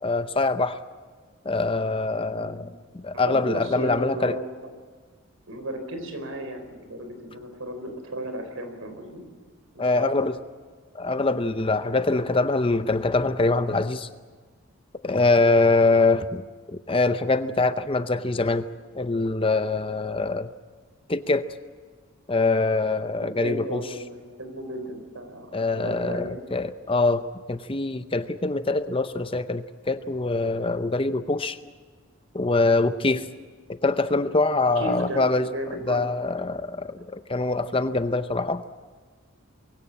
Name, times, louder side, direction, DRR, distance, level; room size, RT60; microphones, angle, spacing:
voice 1, 0.0-0.8 1.4-4.4 9.8-10.3 10.9-14.1 15.0-16.4 16.7-18.6 18.9-20.5 21.1-21.5 22.3-23.8 25.5-27.2 27.5-31.6 32.3-33.3 33.7-35.5 35.9-38.6, left 3 dB, 25° left, 11 dB, 0.6 m, -24 dB
voice 2, 3.1-4.4 5.5-9.2 9.7-10.1 15.4-15.6 23.4-26.4 34.8-36.0, right 1 dB, 75° right, 7 dB, 4.2 m, -35 dB
23.0 x 17.0 x 8.7 m, 1.5 s
head